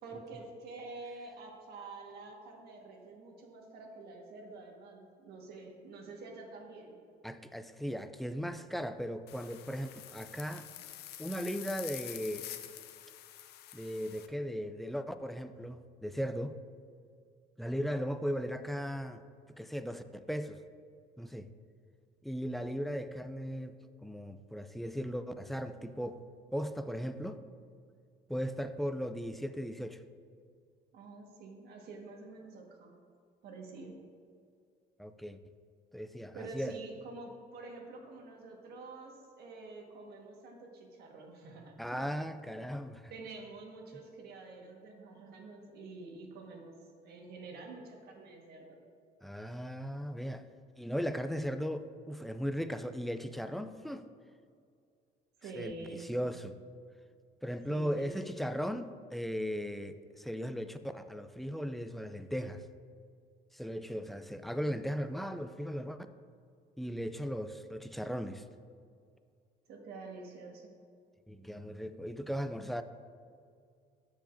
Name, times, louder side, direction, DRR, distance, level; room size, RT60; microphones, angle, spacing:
voice 1, 0.0-7.0 30.9-32.9 33.4-33.9 36.3-42.1 43.1-48.8 55.4-56.1 57.7-58.3 69.7-70.7, right 3 dB, 70° right, 1 dB, 1.5 m, -48 dB
voice 2, 7.2-10.7 11.2-12.4 13.7-16.6 17.6-19.2 19.6-20.6 21.2-21.5 22.2-26.2 26.5-27.4 28.3-30.0 35.0-35.4 35.9-36.8 41.8-43.1 49.2-50.5 50.8-54.1 55.5-56.6 57.4-62.6 63.5-66.0 66.8-68.4 71.3-72.8, equal, ahead, 9 dB, 0.3 m, -37 dB
sound 1, 9.3-14.3, left 12 dB, 75° left, 0.5 m, -47 dB
13.5 x 5.0 x 2.6 m, 2.2 s
cardioid pair, 110°, 17 cm